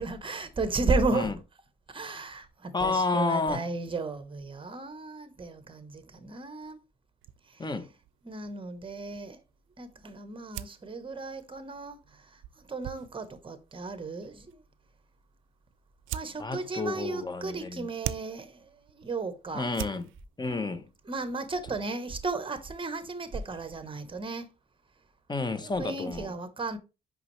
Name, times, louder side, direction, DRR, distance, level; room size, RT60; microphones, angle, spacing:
voice 1, 0.0-1.3 1.9-6.8 7.5-7.7 8.2-9.4 9.8-14.6 16.1-19.7 21.1-24.5 25.8-26.8, right 3 dB, 25° right, 1.1 m, -34 dB
voice 2, 2.7-3.7 7.6-7.9 16.4-17.9 19.5-20.1 20.4-20.9 25.3-26.3, left 3 dB, 20° left, 0.9 m, -30 dB
sound 1, 7.2-24.1, right 12 dB, 85° right, 0.4 m, -46 dB
5.9 x 5.4 x 3.2 m
cardioid pair, 90°, 20 cm